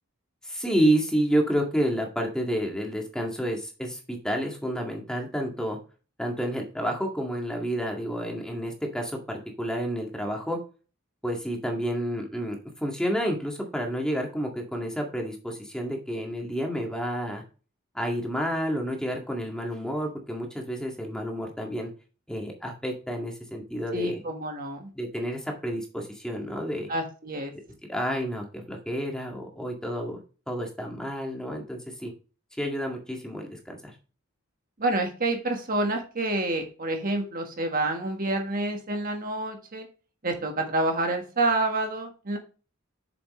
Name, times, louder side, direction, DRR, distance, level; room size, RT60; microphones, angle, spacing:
voice 1, 0.4-5.8 6.2-10.6 11.2-17.4 17.9-21.9 22.3-24.2 25.0-26.9 27.9-30.2 30.5-32.1 32.6-33.9, equal, 5° left, 1 dB, 2.0 m, -30 dB
voice 2, 23.9-24.9 26.9-27.5 34.8-39.9 40.2-42.4, right 2 dB, 40° right, 3 dB, 1.5 m, -28 dB
8.7 x 6.9 x 3.1 m, 0.35 s
head